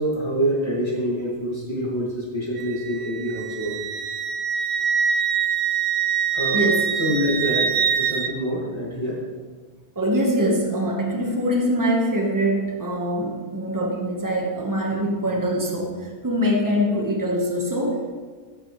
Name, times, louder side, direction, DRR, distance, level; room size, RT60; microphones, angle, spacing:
voice 1, 0.0-3.8 6.3-6.6 7.0-9.2, equal, 25° left, -6 dB, 2.7 m, -26 dB
Wind instrument woodwind instrument, 2.6-8.3, right 7 dB, 65° right, 0.9 m, -24 dB
voice 2, 6.5-6.9 9.9-18.0, equal, 20° right, 0 dB, 1.5 m, -23 dB
15.0 x 8.6 x 3.3 m, 1.5 s
omnidirectional pair, 1.0 m